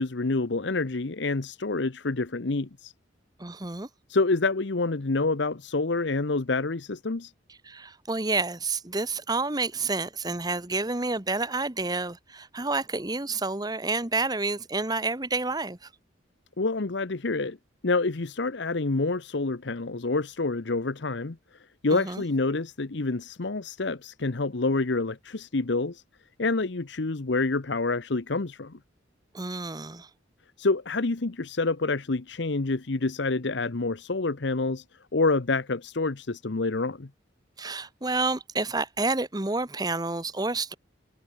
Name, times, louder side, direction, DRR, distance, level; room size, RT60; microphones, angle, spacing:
voice 1, 0.0-2.9 4.1-7.3 16.6-17.6 17.8-21.4 21.8-26.0 26.4-28.8 30.6-34.8 35.1-37.1, left 3 dB, 65° left, 0.9 m, -27 dB
voice 2, 3.4-3.9 7.7-15.9 21.9-22.2 29.3-30.1 37.6-40.8, right 3 dB, 20° right, 1.2 m, -29 dB
head